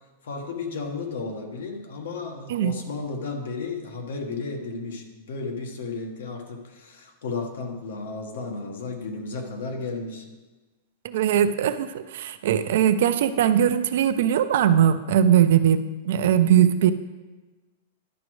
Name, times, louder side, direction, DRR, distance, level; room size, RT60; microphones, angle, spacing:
voice 1, 0.2-10.3 12.5-12.7, left 4 dB, 80° left, 4 dB, 1.2 m, -33 dB
voice 2, 11.0-16.9, right 10 dB, 55° right, 11 dB, 0.4 m, -20 dB
10.5 x 6.1 x 3.1 m, 1.2 s
supercardioid pair, 175°, 0 cm